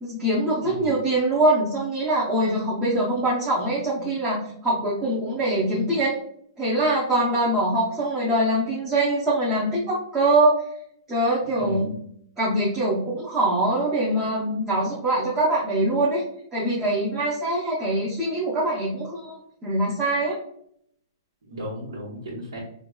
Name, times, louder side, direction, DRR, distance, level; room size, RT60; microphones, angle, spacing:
voice 1, 0.0-6.2 6.6-10.6 11.1-12.0 12.4-16.2 16.5-20.4, right 1 dB, 10° right, -7 dB, 0.6 m, -23 dB
voice 2, 11.6-11.9 21.4-22.6, equal, 80° right, -6 dB, 1.1 m, -34 dB
4.5 x 2.2 x 2.2 m, 0.70 s
hypercardioid pair, 170°, 2 cm